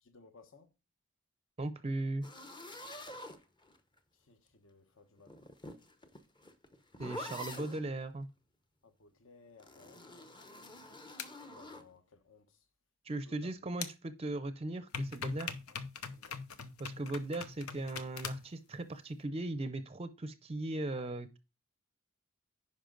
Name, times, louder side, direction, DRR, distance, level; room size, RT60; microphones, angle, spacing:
voice 1, 0.0-0.7 4.3-5.4 8.8-10.7 11.5-12.6 13.2-13.5 16.1-16.4, left 4 dB, 60° left, 1.0 m, -60 dB
voice 2, 1.6-2.3 7.0-8.3 13.0-15.6 16.8-21.4, right 2 dB, 30° right, 0.5 m, -38 dB
sound 1, 2.2-4.0 5.2-7.9 9.6-11.9, left 1 dB, 20° left, 0.7 m, -47 dB
sound 2, 11.2-11.3 13.8-13.9 14.9-18.5, left 5 dB, 90° left, 0.9 m, -41 dB
10.0 x 5.3 x 3.8 m
head